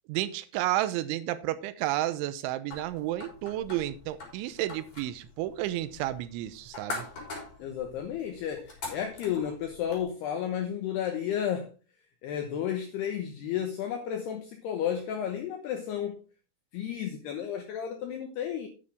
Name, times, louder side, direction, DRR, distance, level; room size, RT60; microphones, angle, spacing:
voice 1, 0.1-7.1, right 14 dB, 80° right, 2.9 m, -31 dB
sound 1, 2.7-10.0, left 3 dB, 35° left, 4.3 m, -43 dB
voice 2, 7.6-11.7 12.2-16.2 16.7-18.7, left 9 dB, 75° left, 2.5 m, -32 dB
9.7 x 9.6 x 3.5 m
omnidirectional pair, 5.8 m